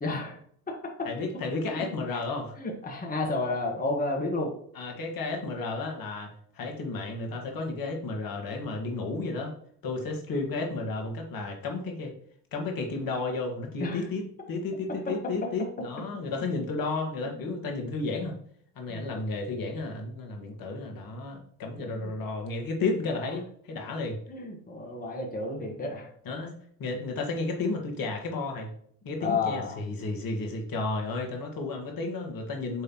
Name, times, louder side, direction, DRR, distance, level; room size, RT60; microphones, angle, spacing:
voice 1, 0.0-0.4 0.7-1.1 1.7-2.2 2.6-4.5 13.8-14.0 15.1-15.5 16.4-16.5 17.5-17.7 18.2-18.3 18.9-19.0 21.9-22.1 23.2-23.3 24.3-26.1 29.2-29.8, left 3 dB, 20° left, 1 dB, 1.4 m, -32 dB
voice 2, 1.0-2.6 4.8-9.5 9.8-12.1 12.5-18.3 18.8-24.2 26.3-26.5 26.8-28.7 29.1-32.8, left 3 dB, 45° left, 2 dB, 1.8 m, -32 dB
6.6 x 5.0 x 3.0 m, 0.62 s
hypercardioid pair, 70°, 46 cm